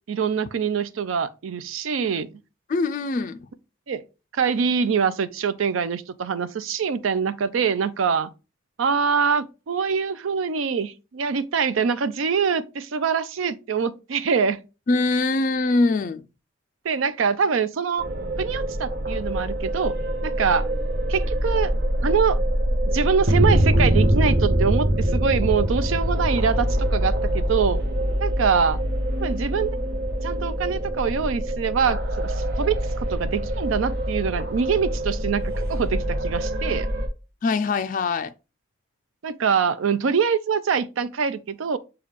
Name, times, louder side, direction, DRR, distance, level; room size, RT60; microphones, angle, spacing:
voice 1, 0.1-2.3 3.9-4.0 4.3-8.3 8.8-14.6 16.8-18.1 18.4-20.0 20.2-20.7 21.1-21.7 22.0-22.4 22.9-27.8 28.2-28.8 29.2-29.8 30.2-36.9 39.2-41.8, right 6 dB, 80° right, 0.4 m, -24 dB
voice 2, 2.7-3.5 14.9-16.2 37.4-38.3, left 3 dB, 40° left, 0.3 m, -23 dB
sound 1, 18.0-37.1, right 1 dB, 55° right, 0.8 m, -24 dB
6.5 x 2.3 x 3.4 m
head